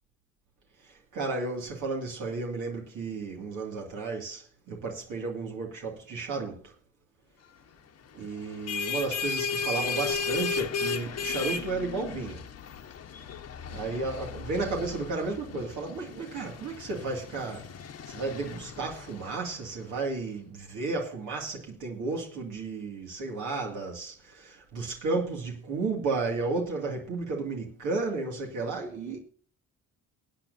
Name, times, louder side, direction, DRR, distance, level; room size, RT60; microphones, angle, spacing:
voice 1, 0.8-6.7 8.1-12.4 13.7-17.7 18.1-29.2, right 3 dB, 80° right, 2.4 m, -33 dB
sound 1, 8.4-19.7, left 5 dB, 55° left, 1.1 m, -35 dB
21.0 x 8.9 x 2.7 m
cardioid pair, 90°, 30 cm